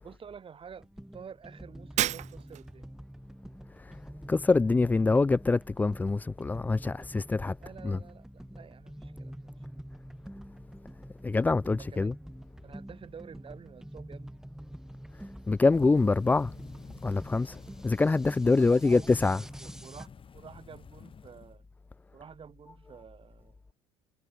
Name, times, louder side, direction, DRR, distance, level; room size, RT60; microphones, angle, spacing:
voice 1, 0.0-2.9 7.6-9.8 11.8-12.1 12.6-14.4 18.6-20.1 20.3-21.6 22.1-23.6, right 7 dB, 40° right, 6.8 m, -50 dB
sound 1, 0.8-20.1, right 1 dB, 5° right, 2.4 m, -46 dB
Shatter, 2.0-2.8, right 13 dB, 55° right, 0.7 m, -31 dB
voice 2, 4.3-7.5 7.8-8.0 11.2-12.1 15.5-16.5 17.0-17.6 17.8-19.4, left 3 dB, 10° left, 0.3 m, -25 dB
sound 2, 15.7-21.6, left 6 dB, 35° left, 5.8 m, -50 dB
supercardioid pair, 80°, 14 cm